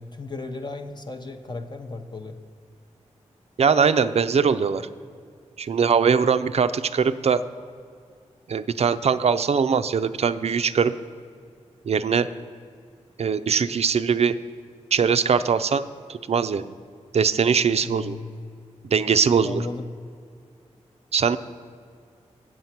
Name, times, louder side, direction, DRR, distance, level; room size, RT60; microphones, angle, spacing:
voice 1, 0.0-2.4 17.8-18.3 19.4-19.9, left 3 dB, 35° left, 4 dB, 0.6 m, -34 dB
voice 2, 3.6-4.9 5.6-7.4 8.5-10.9 11.9-12.3 13.2-14.4 14.9-15.8 16.1-16.6 17.1-18.2 18.8-19.6 21.1-21.4, right 6 dB, 55° right, 12 dB, 0.4 m, -21 dB
7.8 x 7.5 x 5.8 m, 2.2 s
cardioid pair, 50°, 13 cm